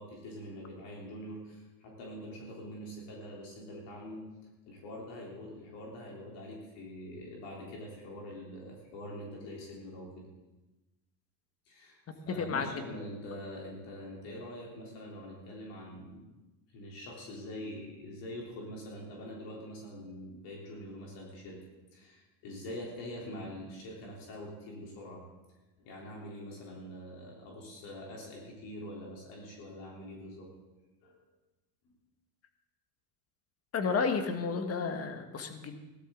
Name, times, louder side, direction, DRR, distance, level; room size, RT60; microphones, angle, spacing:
voice 1, 0.0-4.2 4.7-10.3 11.7-16.2 16.7-21.6 21.9-25.3 25.8-30.5 31.0-31.2 31.8-32.0, left 1 dB, 60° left, -3 dB, 3.7 m, -44 dB
voice 2, 12.4-12.7 33.7-35.8, left 5 dB, 30° left, 6 dB, 1.6 m, -32 dB
17.0 x 12.5 x 3.9 m, 1.1 s
supercardioid pair, 115°, 48 cm